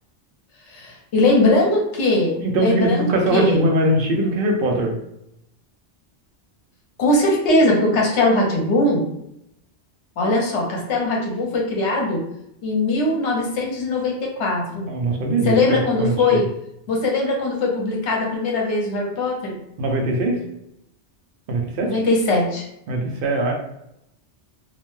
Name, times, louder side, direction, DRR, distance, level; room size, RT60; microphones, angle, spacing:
voice 1, 0.7-3.6 7.0-9.1 10.2-12.2 12.6-14.9 15.4-16.5 16.9-19.6 21.8-22.6, left 2 dB, 75° left, 0 dB, 1.0 m, -20 dB
voice 2, 2.4-4.9 14.9-15.6 16.0-16.1 19.8-20.4 21.5-21.9 22.9-23.5, right 1 dB, 60° right, 1 dB, 0.7 m, -21 dB
2.5 x 2.1 x 3.0 m, 0.79 s
omnidirectional pair, 1.2 m